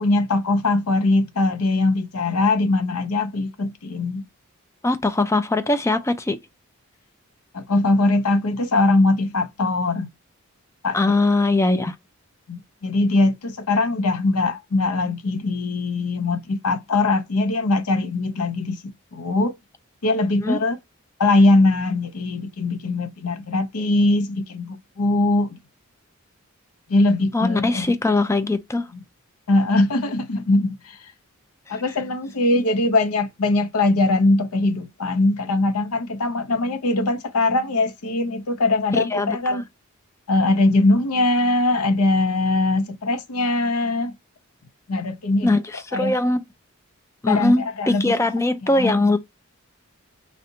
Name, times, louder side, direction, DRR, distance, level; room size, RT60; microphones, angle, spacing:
voice 1, 0.0-4.2 7.5-10.1 10.8-11.0 12.5-18.8 19.1-19.5 20.0-20.8 21.2-25.6 26.9-27.9 28.9-29.0 29.5-31.0 31.7-39.6 40.3-44.1 44.9-45.5 45.9-46.2 47.3-48.2 48.6-48.9, left 2 dB, 85° left, 0.7 m, -21 dB
voice 2, 4.8-6.4 10.9-11.9 20.4-20.6 27.3-28.9 38.9-39.6 45.4-46.4 47.2-49.2, left 2 dB, 15° left, 0.3 m, -21 dB
3.3 x 2.6 x 2.7 m
head